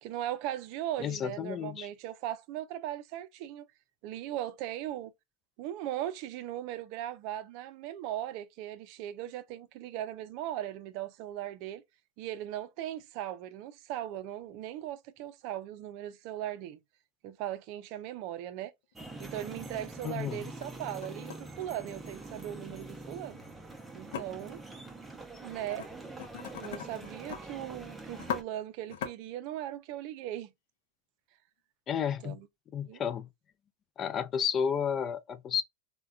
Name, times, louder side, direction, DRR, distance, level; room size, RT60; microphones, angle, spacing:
voice 1, 0.0-3.7 4.0-5.1 5.6-11.8 12.2-16.8 17.2-18.7 19.2-23.4 23.9-24.6 25.4-25.9 26.6-30.5 32.2-32.5 32.8-33.0, right 12 dB, 60° right, 0.4 m, -38 dB
voice 2, 1.0-1.9 20.0-20.4 31.9-32.4 32.7-33.3 34.0-35.6, left 8 dB, 35° left, 0.3 m, -32 dB
sound 1, 18.9-19.0 19.5-19.6 20.3-20.7 21.0-22.4 24.1-24.2 25.6-25.9 26.2-27.4 27.7-27.8 28.1-28.4 28.9-29.1, left 8 dB, 75° left, 0.6 m, -39 dB
sound 2, 18.9-28.4, right 2 dB, 10° right, 0.6 m, -45 dB
3.4 x 2.2 x 2.4 m
supercardioid pair, 115°, 0 cm